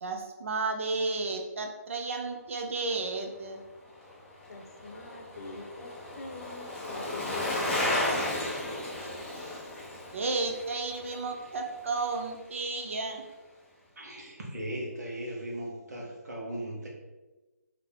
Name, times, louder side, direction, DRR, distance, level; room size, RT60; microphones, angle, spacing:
voice 1, 0.0-3.6 9.0-9.1 10.1-13.2, right 3 dB, 50° right, 4 dB, 0.7 m, -32 dB
Bicycle, 3.9-12.3 12.6-12.7, left 1 dB, 5° left, 0.6 m, -34 dB
voice 2, 4.5-5.9 6.2-7.7, left 3 dB, 65° left, 3 dB, 0.8 m, -43 dB
voice 3, 14.0-16.9, right 1 dB, 75° right, -2 dB, 1.4 m, -37 dB
3.9 x 2.9 x 3.6 m, 1.2 s
hypercardioid pair, 165°, 9 cm